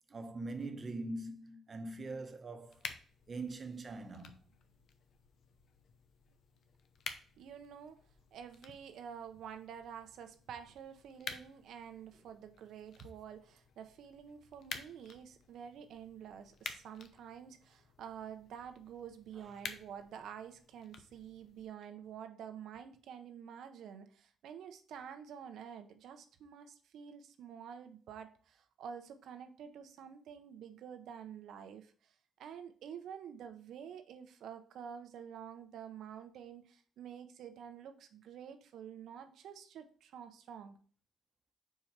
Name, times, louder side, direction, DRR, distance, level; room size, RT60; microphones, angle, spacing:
voice 1, 0.1-2.8 3.3-4.4, right 2 dB, 35° right, 1.0 m, -42 dB
sound 1, 2.7-21.7, left 6 dB, 65° left, 0.7 m, -51 dB
voice 2, 7.4-8.0 8.3-40.8, right 8 dB, 75° right, 0.7 m, -49 dB
4.7 x 4.6 x 5.6 m
cardioid pair, 90°, 0 cm